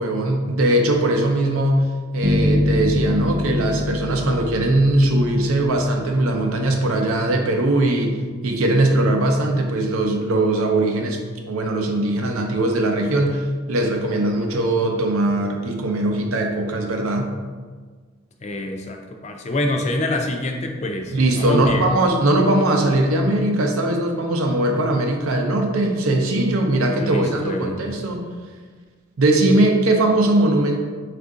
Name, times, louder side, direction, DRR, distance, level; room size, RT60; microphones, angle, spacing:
voice 1, 0.0-8.2 8.4-11.2 11.5-17.3 21.1-28.2 29.2-30.8, right 1 dB, 85° right, 2 dB, 0.6 m, -20 dB
sound 1, 2.2-6.2, left 1 dB, 30° right, 0.5 m, -23 dB
voice 2, 18.4-21.9 27.0-27.9, left 1 dB, 30° left, 4 dB, 0.3 m, -26 dB
4.4 x 2.5 x 3.7 m, 1.5 s
head